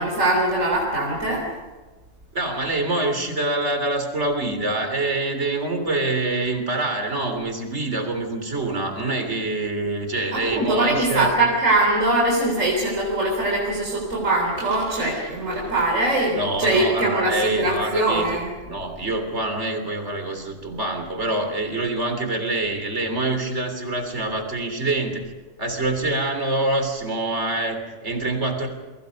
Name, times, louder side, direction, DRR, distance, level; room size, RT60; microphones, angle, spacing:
voice 1, 0.0-1.5 10.3-18.5, right 2 dB, 85° right, -2 dB, 4.2 m, -22 dB
voice 2, 2.3-11.3 16.3-18.4 18.7-25.2 25.6-28.7, right 2 dB, 60° right, 6 dB, 3.7 m, -25 dB
30.0 x 23.0 x 5.3 m, 1.2 s
omnidirectional pair, 1.3 m